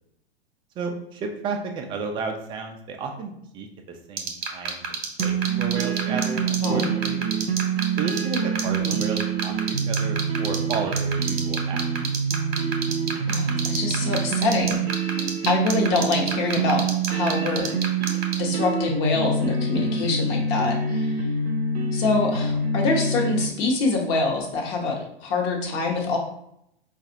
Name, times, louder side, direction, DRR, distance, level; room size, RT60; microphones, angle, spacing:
voice 1, 0.8-7.2 8.0-11.9 22.5-22.6, right 4 dB, 15° right, 3 dB, 0.4 m, -33 dB
sound 1, 4.2-18.3, right 8 dB, 45° right, 0.9 m, -27 dB
sound 2, 5.2-23.5, right 4 dB, 75° right, 0.6 m, -26 dB
voice 2, 6.6-6.9 8.8-9.0 13.3-17.7 18.4-21.1 21.9-26.2, left 3 dB, 35° left, 0 dB, 1.0 m, -25 dB
4.8 x 2.4 x 2.8 m, 0.75 s
figure-of-eight pair, 100°, 32 cm